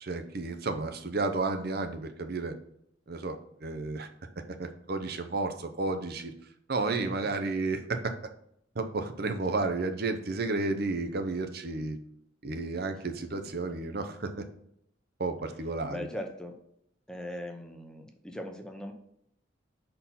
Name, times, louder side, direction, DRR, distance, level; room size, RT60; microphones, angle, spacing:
voice 1, 0.0-2.6 3.1-4.1 4.5-6.3 6.7-8.1 8.7-12.0 12.4-14.5 15.2-16.1, right 3 dB, 50° right, 7 dB, 0.7 m, -32 dB
voice 2, 15.9-16.5 17.1-18.9, left 1 dB, 5° left, 4 dB, 0.7 m, -39 dB
5.5 x 4.4 x 5.7 m, 0.72 s
head